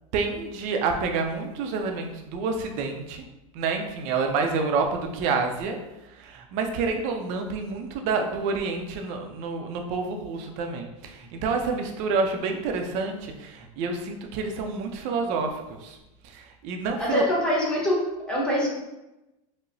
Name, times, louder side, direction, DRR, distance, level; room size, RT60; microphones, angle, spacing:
voice 1, 0.1-3.2 3.5-5.8 6.2-10.9 11.3-15.5 15.8-16.0 16.3-17.3, right 4 dB, 40° right, 4 dB, 0.5 m, -28 dB
voice 2, 17.0-18.0 18.3-18.7, left 1 dB, 5° left, -5 dB, 0.8 m, -24 dB
4.7 x 2.0 x 2.6 m, 0.96 s
supercardioid pair, 155°, 18 cm